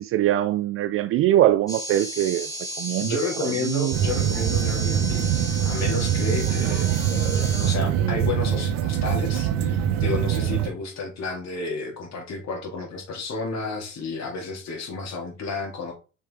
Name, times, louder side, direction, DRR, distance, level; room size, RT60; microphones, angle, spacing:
voice 1, 0.0-2.5 2.8-4.0 6.7-6.8, right 13 dB, 35° right, 0.4 m, -23 dB
sound 1, 1.7-7.8, right 1 dB, 10° left, 3.1 m, -34 dB
voice 2, 3.0-6.9 7.6-15.9, left 3 dB, 45° left, 2.9 m, -31 dB
sound 2, 3.9-10.7, right 9 dB, 55° right, 1.1 m, -23 dB
6.5 x 4.6 x 3.8 m
figure-of-eight pair, 60°, 38 cm